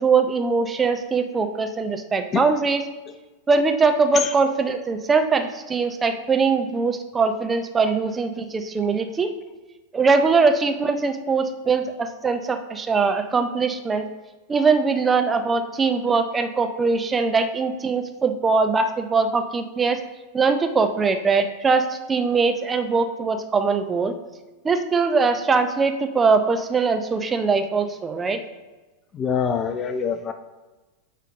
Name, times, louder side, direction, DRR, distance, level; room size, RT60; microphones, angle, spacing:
voice 1, 0.0-2.8 3.5-9.3 9.9-14.1 14.5-20.0 20.3-24.1 24.6-28.4, right 4 dB, 15° right, 7 dB, 0.7 m, -21 dB
voice 2, 29.1-30.3, left 6 dB, 25° left, 8 dB, 0.5 m, -24 dB
8.1 x 4.1 x 5.0 m, 1.2 s
figure-of-eight pair, 90°, 0 cm